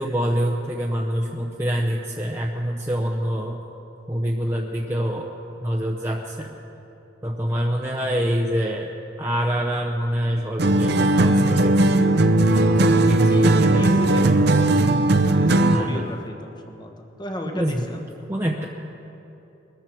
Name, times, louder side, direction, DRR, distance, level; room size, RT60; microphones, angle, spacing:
voice 1, 0.0-3.6 4.1-5.3 5.6-6.5 7.2-8.9 9.2-12.0 12.5-14.6 15.7-16.0 17.5-17.9 18.3-18.6, equal, 10° right, -1 dB, 0.7 m, -26 dB
sound 1, 10.6-15.9, right 2 dB, 50° right, 0.7 m, -17 dB
voice 2, 12.7-18.0, equal, 20° left, 3 dB, 1.2 m, -35 dB
22.0 x 13.5 x 4.6 m, 2.9 s
head